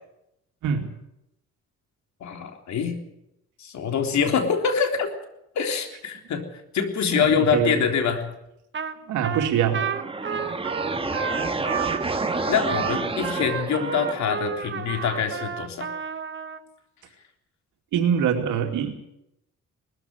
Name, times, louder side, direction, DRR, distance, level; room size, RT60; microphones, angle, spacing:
voice 1, 2.2-2.9 3.6-5.1 5.6-6.4 6.7-8.3 12.5-15.9, left 6 dB, 65° left, 5 dB, 3.6 m, -24 dB
voice 2, 7.1-7.8 9.1-9.9 17.9-18.9, right 8 dB, 85° right, 3 dB, 2.7 m, -24 dB
Trumpet, 8.7-9.0 9.2-16.6, right 7 dB, 40° right, 1.6 m, -31 dB
sound 1, 9.5-14.5, right 3 dB, 20° right, 1.8 m, -29 dB
20.0 x 14.0 x 9.8 m, 0.84 s
cardioid pair, 90°, 30 cm